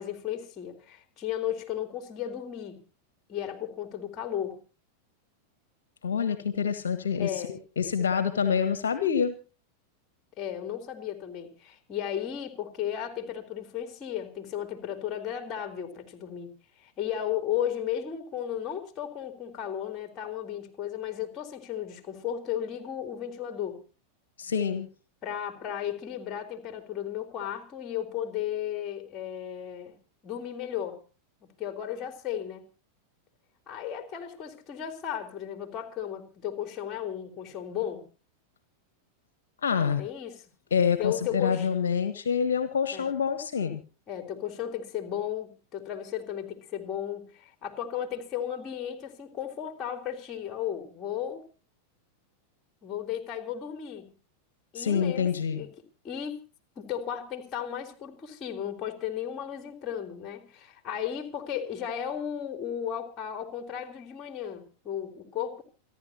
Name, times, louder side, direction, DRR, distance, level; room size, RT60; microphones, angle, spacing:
voice 1, 0.0-2.8 3.3-4.6 7.2-7.6 10.4-16.5 16.8-23.8 25.2-30.0 30.2-31.0 31.6-32.6 33.7-38.0 40.0-40.4 41.0-41.7 42.9-43.1 44.1-51.4 52.8-54.1 54.7-55.7 56.0-56.4 56.8-65.6, left 10 dB, 30° left, 3.6 m, -34 dB
voice 2, 6.0-9.4 24.4-24.9 39.6-40.0 40.7-43.8 54.7-55.6, left 7 dB, 65° left, 1.5 m, -27 dB
28.5 x 11.5 x 3.0 m
figure-of-eight pair, 90°, 0 cm